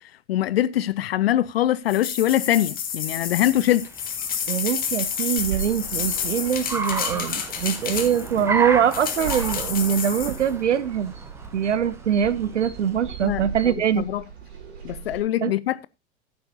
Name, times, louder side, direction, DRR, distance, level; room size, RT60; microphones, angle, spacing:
voice 1, 0.0-3.9 13.2-14.2 14.8-15.9, left 13 dB, 55° left, 0.5 m, -23 dB
sound 1, 1.9-8.4 8.9-10.4, left 7 dB, 25° left, 2.1 m, -30 dB
Car, 3.1-13.4, right 3 dB, 5° right, 0.9 m, -34 dB
voice 2, 4.5-11.1 11.5-14.1 15.4-15.5, right 8 dB, 75° right, 0.6 m, -23 dB
sound 2, 5.4-15.2, right 7 dB, 60° right, 3.6 m, -38 dB
14.5 x 7.8 x 2.7 m
figure-of-eight pair, 95°, 36 cm